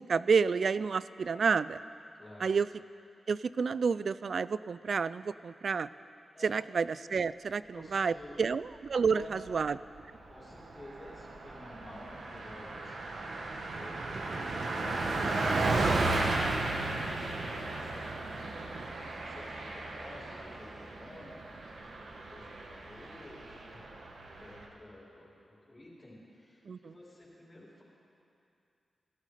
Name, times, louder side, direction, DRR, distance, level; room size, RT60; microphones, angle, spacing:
voice 1, 0.0-1.8 2.4-2.7 3.3-5.9 6.4-9.8 26.7-26.9, right 5 dB, 65° right, 16 dB, 0.3 m, -30 dB
voice 2, 2.1-2.5 6.3-6.6 7.5-8.4 9.1-9.6 10.3-18.7 19.1-23.8 24.1-25.3 25.7-27.8, left 1 dB, 35° left, -10 dB, 4.5 m, -51 dB
Car passing by, 9.0-9.6 10.0-10.1 10.4-24.7, right 2 dB, 85° right, 1.5 m, -35 dB
17.0 x 13.0 x 5.0 m, 2.6 s
wide cardioid pair, 85°, 0 cm